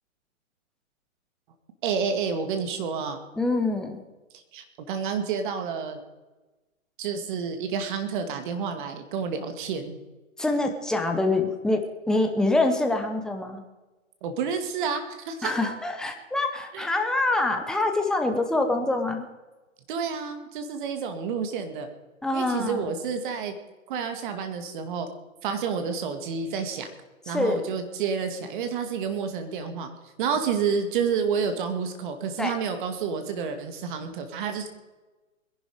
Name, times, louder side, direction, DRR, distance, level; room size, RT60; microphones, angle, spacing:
voice 1, 1.8-3.2 4.5-6.0 7.0-10.0 14.2-15.7 16.7-16.9 19.9-21.9 22.3-23.5 23.9-25.1 25.4-26.9 27.3-29.9 30.2-34.7, right 6 dB, 35° right, 7 dB, 2.2 m, -29 dB
voice 2, 3.4-4.0 10.4-13.6 15.4-19.2 22.2-22.9 27.3-27.6 32.4-32.5, left 2 dB, ahead, 4 dB, 0.6 m, -25 dB
21.0 x 11.0 x 5.0 m, 1.2 s
hypercardioid pair, 140°, 40 cm